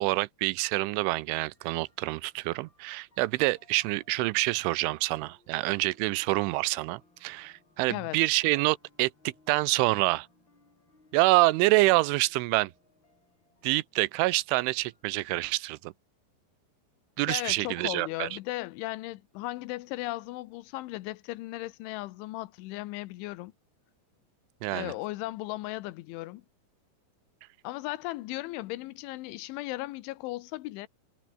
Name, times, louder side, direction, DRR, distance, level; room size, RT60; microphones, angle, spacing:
voice 1, 0.0-10.3 11.1-12.7 13.6-15.9 17.2-18.3 24.6-24.9, right 21 dB, 85° right, 3.1 m, -27 dB
sound 1, 1.3-15.6, left 2 dB, 25° left, 7.0 m, -66 dB
voice 2, 7.9-8.2 17.3-23.5 24.7-26.4 27.6-30.9, left 18 dB, 85° left, 3.3 m, -36 dB
omnidirectional pair, 5.4 m